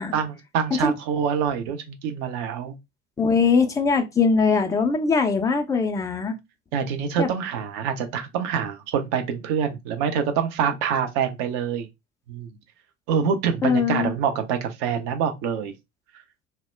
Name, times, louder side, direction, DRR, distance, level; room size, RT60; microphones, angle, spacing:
voice 1, 0.1-2.8 6.7-11.9 12.3-12.5 13.1-15.7, right 7 dB, 50° right, 0.7 m, -26 dB
voice 2, 3.2-6.4 7.2-7.3 13.6-14.1, left 4 dB, 10° left, 0.4 m, -21 dB
2.2 x 2.0 x 3.2 m
figure-of-eight pair, 60°, 37 cm